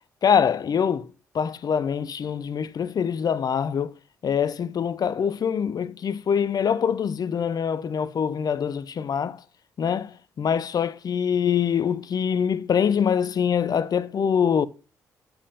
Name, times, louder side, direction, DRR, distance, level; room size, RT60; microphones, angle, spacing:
voice 1, 0.2-1.1 1.3-3.9 4.2-9.4 9.8-14.7, left 7 dB, 50° left, 0.6 m, -24 dB
7.2 x 4.5 x 5.0 m
hypercardioid pair, 45°, 9 cm